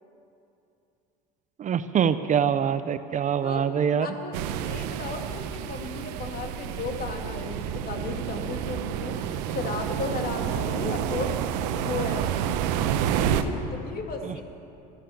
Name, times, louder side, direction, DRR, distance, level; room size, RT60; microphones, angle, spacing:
voice 1, 1.6-4.1 14.3-14.4, right 8 dB, 35° right, 12 dB, 0.7 m, -24 dB
voice 2, 4.0-11.4 11.8-12.3 13.0-14.4, left 4 dB, 45° left, 4 dB, 2.2 m, -35 dB
sound 1, 4.3-13.4, right 9 dB, 75° right, 0.9 m, -29 dB
13.5 x 11.0 x 8.5 m, 2.7 s
hypercardioid pair, 80°, 21 cm